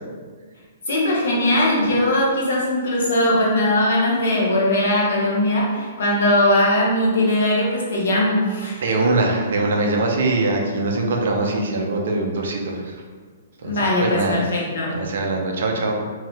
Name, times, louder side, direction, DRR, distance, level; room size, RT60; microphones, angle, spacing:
voice 1, 0.9-9.1 13.6-15.0, left 1 dB, 60° left, -3 dB, 0.9 m, -20 dB
voice 2, 8.8-12.9 13.6-14.4 14.9-16.0, right 2 dB, 60° right, 1 dB, 0.5 m, -22 dB
2.7 x 2.7 x 3.3 m, 1.5 s
figure-of-eight pair, 115°, 0 cm